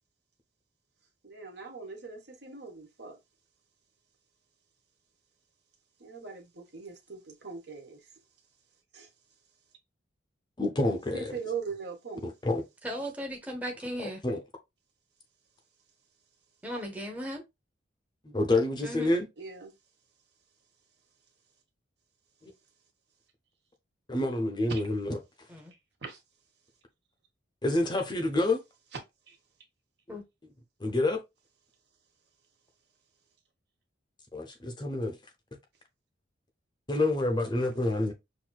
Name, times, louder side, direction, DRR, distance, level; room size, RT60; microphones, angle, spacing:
voice 1, 1.2-3.2 6.0-8.1 8.9-9.1 11.1-12.3 19.4-19.7 24.7-24.8 26.0-26.2 29.3-29.4, right 5 dB, 60° right, 1.3 m, -40 dB
voice 2, 10.6-11.3 12.2-12.6 14.0-14.4 18.2-19.3 22.4-22.5 24.1-25.2 27.6-28.6 30.1-30.2 30.8-31.2 34.3-35.2 36.9-38.1, left 2 dB, 20° left, 0.6 m, -28 dB
voice 3, 12.8-14.2 16.6-17.4 18.8-19.1 25.5-25.7 30.1-30.2, equal, 10° right, 0.9 m, -36 dB
6.1 x 2.6 x 2.3 m
head